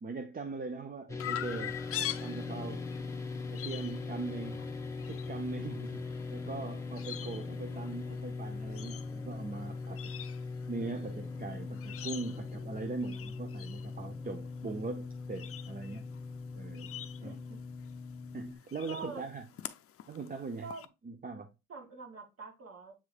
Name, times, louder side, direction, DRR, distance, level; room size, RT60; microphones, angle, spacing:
voice 1, 0.0-1.8 2.2-2.8 3.5-4.7 5.0-10.1 10.7-16.0 16.5-16.9 17.2-17.4 18.3-19.5 20.1-20.7 21.0-21.5, right 3 dB, 30° right, 0.6 m, -41 dB
sound 1, 1.1-18.6, left 4 dB, 10° left, 1.1 m, -40 dB
Chirp tweet, 1.2-20.8, left 10 dB, 50° left, 0.5 m, -46 dB
voice 2, 17.2-17.6 18.9-19.2 20.6-20.8 21.7-22.9, right 4 dB, 50° right, 2.2 m, -45 dB
7.3 x 3.1 x 2.2 m
cardioid pair, 90°, 30 cm